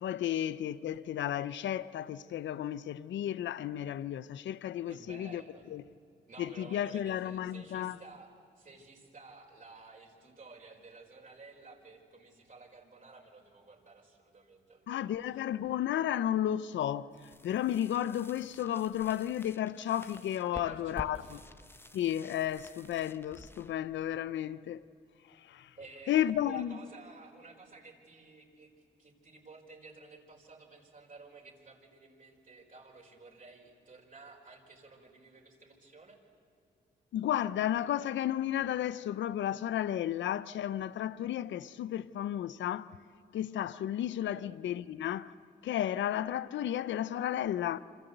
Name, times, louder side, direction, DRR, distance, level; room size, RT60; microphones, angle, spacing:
voice 1, 0.0-5.4 5.7-5.8 6.4-8.0 14.9-17.1 17.4-21.4 21.9-24.8 25.3-25.7 26.1-26.8 37.1-42.9 43.3-45.3 45.6-47.8, left 11 dB, 85° left, 0.6 m, -33 dB
voice 2, 4.9-5.7 6.3-15.5 20.5-21.4 25.8-28.7 29.0-36.2 44.3-44.5, right 3 dB, 45° right, 4.9 m, -53 dB
sound 1, 17.1-24.9, left 1 dB, 10° left, 1.1 m, -51 dB
27.0 x 26.0 x 8.0 m
cardioid pair, 65°, 19 cm